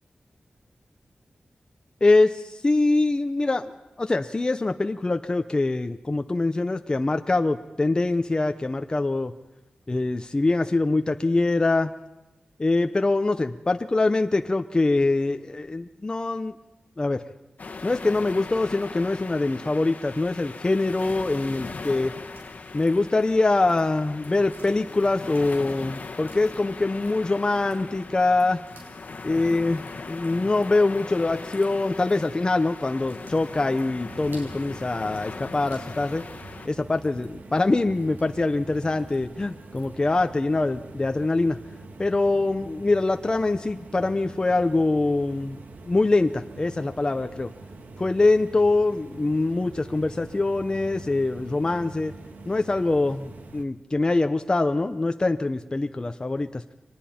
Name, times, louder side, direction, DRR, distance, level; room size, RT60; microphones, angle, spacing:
voice 1, 2.0-9.3 9.9-11.9 12.6-16.5 17.0-17.2 17.8-22.1 22.7-28.6 29.2-36.2 36.6-41.6 42.0-45.6 45.9-47.5 48.0-52.1 52.5-56.6, left 2 dB, 25° left, 7 dB, 0.7 m, -24 dB
sound 1, 17.6-36.7, left 4 dB, 55° left, 1.3 m, -39 dB
sound 2, 21.8-39.9, right 2 dB, 80° right, 6.9 m, -54 dB
sound 3, 34.1-53.6, right 2 dB, 65° right, 1.6 m, -44 dB
30.0 x 23.5 x 4.3 m, 0.99 s
wide cardioid pair, 125°, 3 cm